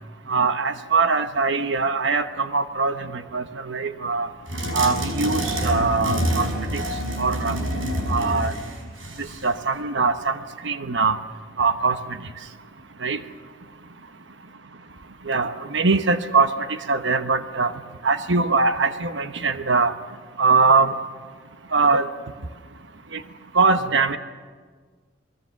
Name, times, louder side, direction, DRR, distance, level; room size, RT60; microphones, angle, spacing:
voice 1, 0.3-4.3 4.7-6.8 7.2-7.6 8.1-8.5 9.2-10.4 10.6-11.2 11.6-12.0 13.0-13.2 15.3-16.5 16.9-17.7 18.0-19.9 20.4-20.9 21.7-22.1 23.1-23.2 23.5-24.2, right 4 dB, 65° right, 9 dB, 1.1 m, -22 dB
sound 1, 4.5-9.5, equal, 85° right, 5.3 m, -27 dB
25.5 x 20.5 x 7.2 m, 1.6 s
head